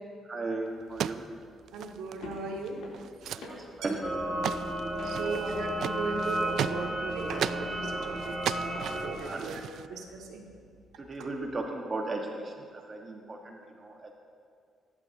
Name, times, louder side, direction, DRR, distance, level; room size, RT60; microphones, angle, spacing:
voice 1, 0.2-1.2 3.3-4.0 5.0-5.4 9.1-9.5 11.0-14.1, right 2 dB, 35° right, 1 dB, 1.7 m, -37 dB
sound 1, 0.7-11.6, left 2 dB, 80° left, 3.4 m, -51 dB
sound 2, 0.8-2.4 2.6-2.7 2.9-3.5 3.8-4.1 4.4-7.7 8.2-9.9, right 10 dB, 70° right, 0.3 m, -36 dB
voice 2, 1.7-2.8 5.0-8.3 8.6-9.6 9.9-10.5, right 4 dB, 90° right, -1 dB, 2.4 m, -37 dB
sound 3, 4.0-9.2, right 1 dB, ahead, 2.5 m, -33 dB
27.0 x 11.5 x 2.9 m, 2.2 s
cardioid pair, 90°, 0 cm